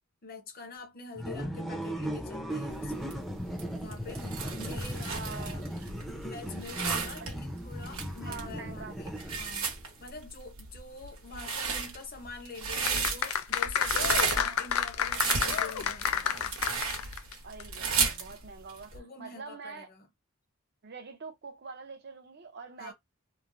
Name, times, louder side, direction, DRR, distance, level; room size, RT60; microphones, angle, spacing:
voice 1, 0.2-3.2 3.8-5.2 6.2-16.5 18.9-20.1 22.8-22.9, left 3 dB, 45° left, 0.8 m, -46 dB
sound 1, 1.1-9.7, equal, ahead, 0.6 m, -37 dB
sound 2, 2.7-19.0, right 5 dB, 85° right, 1.0 m, -34 dB
voice 2, 5.1-5.7 7.2-7.3 8.3-8.9 14.3-14.6 17.4-18.9 19.2-19.9 20.8-22.9, right 4 dB, 55° right, 0.6 m, -44 dB
sound 3, 12.8-17.3 17.6-17.7, left 8 dB, 90° left, 0.4 m, -30 dB
3.1 x 2.1 x 2.5 m
head